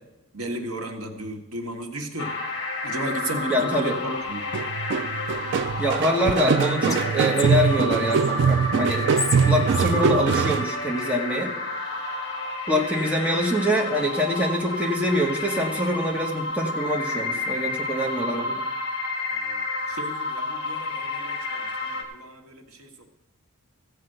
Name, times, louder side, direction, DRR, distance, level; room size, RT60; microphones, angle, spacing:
voice 1, 0.3-2.3 2.8-4.5 19.3-19.6 19.9-23.1, right 1 dB, 75° right, 4 dB, 1.4 m, -34 dB
sound 1, 2.2-22.0, left 2 dB, 50° left, 1.7 m, -30 dB
voice 2, 3.5-4.0 5.8-9.0 9.5-11.5 12.7-18.6, equal, 5° right, 0 dB, 1.1 m, -25 dB
sound 2, 4.5-10.6, right 6 dB, 50° right, 0.3 m, -23 dB
Whispering, 6.3-8.3 8.9-11.1, left 4 dB, 15° left, 0.6 m, -35 dB
15.0 x 5.0 x 7.8 m, 0.97 s
head